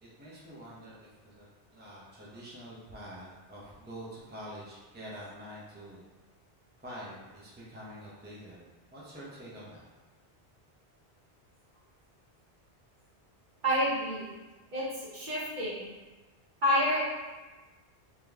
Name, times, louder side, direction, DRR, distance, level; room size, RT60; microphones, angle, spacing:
voice 1, 0.0-1.5 1.7-6.0 6.8-8.6 8.9-9.8 11.7-11.8, equal, 10° right, -7 dB, 0.7 m, -46 dB
voice 2, 13.6-14.3 14.7-14.8 15.1-15.9 16.6-17.0, equal, 50° right, -7 dB, 1.1 m, -28 dB
3.7 x 2.9 x 3.4 m, 1.2 s
omnidirectional pair, 1.1 m